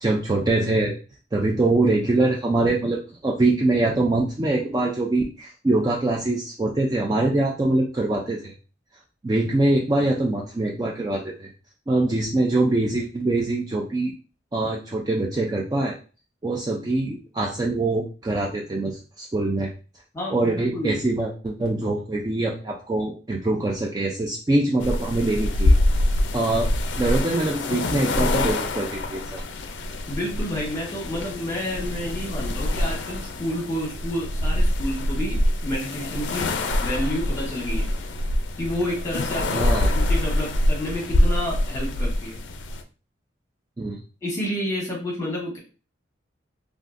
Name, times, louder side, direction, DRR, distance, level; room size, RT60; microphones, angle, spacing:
voice 1, 0.0-0.9 1.3-8.5 9.2-11.5 11.9-14.1 14.5-16.0 16.4-19.7 20.3-25.7 26.3-26.7 27.0-29.4 39.5-39.9 43.8-44.0, right 2 dB, 20° right, -1 dB, 0.3 m, -23 dB
voice 2, 20.1-21.0 30.1-37.9 38.6-39.6 39.9-42.4 44.2-45.6, equal, 15° left, -2 dB, 1.1 m, -30 dB
sound 1, 24.8-42.8, left 1 dB, 70° left, 0.4 m, -25 dB
3.6 x 2.4 x 2.5 m, 0.36 s
head